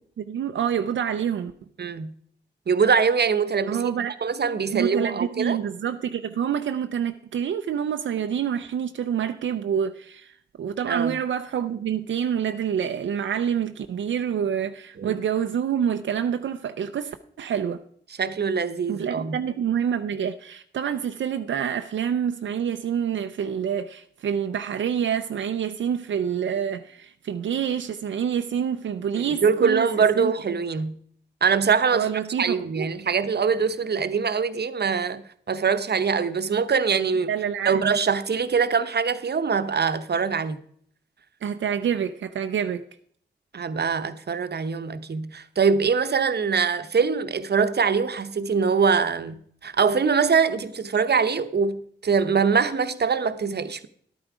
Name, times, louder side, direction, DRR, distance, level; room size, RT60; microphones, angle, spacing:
voice 1, 0.2-1.5 3.7-4.1 4.7-10.3 10.6-17.8 18.9-29.9 30.2-30.3 31.9-32.9 37.3-37.8 41.4-42.8, right 8 dB, 85° right, 0.5 m, -27 dB
voice 2, 1.8-2.1 2.7-3.9 4.2-5.6 10.9-11.2 15.0-15.2 18.2-19.4 29.2-30.9 31.4-32.1 32.4-35.2 35.5-37.3 37.6-40.6 43.5-53.9, right 5 dB, 60° right, 0.9 m, -23 dB
12.0 x 9.0 x 4.9 m
cardioid pair, 50°, 19 cm